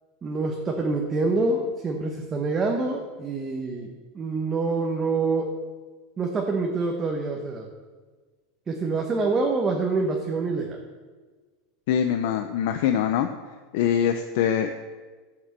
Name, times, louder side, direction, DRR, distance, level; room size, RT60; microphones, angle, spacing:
voice 1, 0.2-3.9 4.1-5.5 6.2-7.7 8.7-10.8, right 3 dB, 15° right, 1 dB, 1.0 m, -26 dB
voice 2, 11.9-13.3 13.7-14.7, left 9 dB, 60° left, 7 dB, 0.7 m, -23 dB
12.5 x 6.1 x 7.5 m, 1.4 s
supercardioid pair, 165°, 0 cm